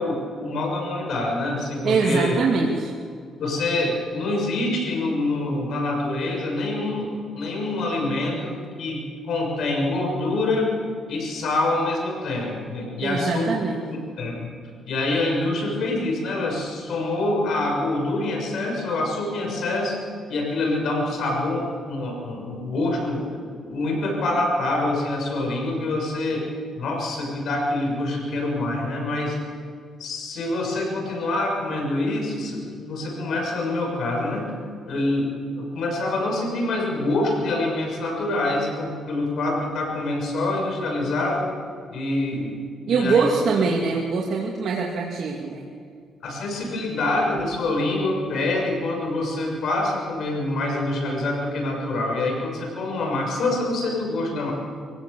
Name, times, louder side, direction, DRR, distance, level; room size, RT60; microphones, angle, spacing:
voice 1, 0.0-2.4 3.4-10.7 11.1-13.5 13.9-14.5 14.9-20.0 20.3-23.3 23.6-26.5 26.8-29.4 30.0-34.5 34.8-41.5 41.9-42.6 42.9-43.3 46.2-54.5, left 2 dB, 70° left, 1 dB, 6.6 m, -26 dB
voice 2, 1.8-2.9 13.0-13.8 42.9-45.7, right 4 dB, 65° right, -1 dB, 2.3 m, -23 dB
24.0 x 16.0 x 7.0 m, 2.1 s
cardioid pair, 90°, 0 cm